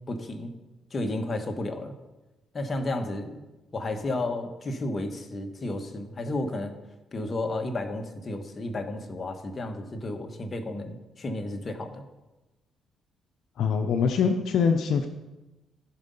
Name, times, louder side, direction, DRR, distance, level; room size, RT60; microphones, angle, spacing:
voice 1, 0.1-0.5 0.9-1.9 2.5-3.4 3.7-6.8 7.1-12.0, left 2 dB, 35° left, 5 dB, 1.4 m, -32 dB
voice 2, 13.6-15.1, left 6 dB, 70° left, 6 dB, 0.7 m, -23 dB
15.5 x 5.3 x 5.5 m, 1.1 s
cardioid pair, 90°, 0 cm